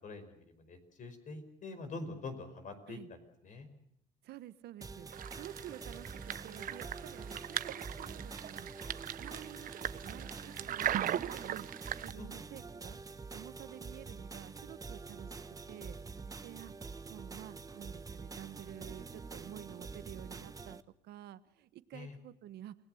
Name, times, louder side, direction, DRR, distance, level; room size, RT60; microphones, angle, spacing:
voice 1, 0.0-3.7 12.2-12.4 21.9-22.2, left 3 dB, 50° left, 8 dB, 5.1 m, -45 dB
voice 2, 4.2-8.7 9.2-11.7 12.0-13.0 13.3-15.4 15.7-16.0 16.4-16.7 17.1-20.8 21.0-22.8, right 13 dB, 75° right, 14 dB, 1.2 m, -50 dB
sound 1, 4.8-20.8, right 4 dB, 20° right, 0.9 m, -46 dB
sound 2, 5.1-12.1, right 11 dB, 55° right, 0.9 m, -39 dB
28.5 x 18.5 x 7.9 m, 0.76 s
cardioid pair, 110°, 17 cm